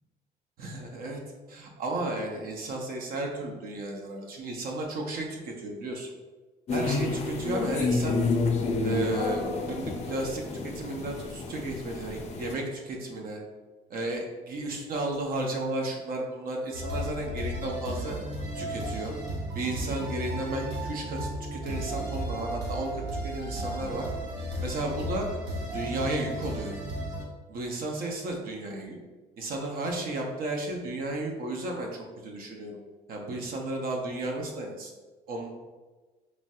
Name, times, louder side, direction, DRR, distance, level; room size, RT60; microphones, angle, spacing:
voice 1, 0.6-1.2 1.5-6.1 6.7-8.2 8.8-10.4 10.7-13.4 13.9-18.2 18.5-19.1 19.5-24.1 24.6-25.3 25.7-26.8 27.5-29.0 29.4-32.8 33.1-34.9 35.3-35.5, right 2 dB, 60° right, 1 dB, 0.6 m, -33 dB
sound 1, 6.7-12.5, left 3 dB, 40° left, 0.4 m, -29 dB
sound 2, 16.7-27.2, equal, 90° right, 0.7 m, -34 dB
3.1 x 2.6 x 2.3 m, 1.3 s
cardioid pair, 110°, 17 cm